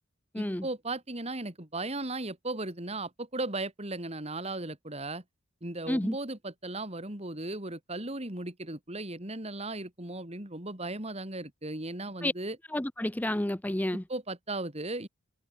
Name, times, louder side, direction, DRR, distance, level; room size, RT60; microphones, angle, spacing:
voice 1, 0.3-5.2 5.6-12.6 13.9-15.1, right 2 dB, 35° right, 3.7 m, -36 dB
voice 2, 12.7-14.0, left 1 dB, 10° left, 0.7 m, -30 dB
head